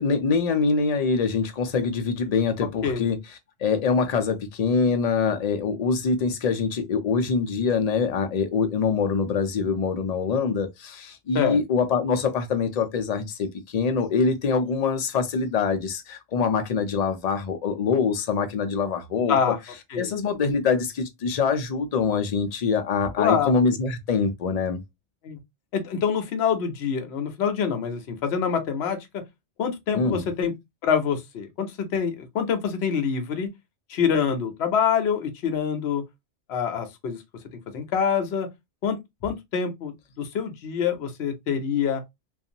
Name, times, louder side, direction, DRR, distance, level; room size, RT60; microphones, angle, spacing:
voice 1, 0.0-3.2 3.6-19.5 20.0-24.8 29.9-30.2, left 5 dB, 50° left, 0.5 m, -24 dB
voice 2, 23.2-23.6 25.2-25.4 25.7-29.2 29.6-30.5 30.8-33.5 33.9-36.0 36.5-37.2 37.7-38.5 38.8-39.0 39.2-42.0, left 7 dB, 70° left, 0.9 m, -25 dB
2.5 x 2.3 x 2.7 m
omnidirectional pair, 1.1 m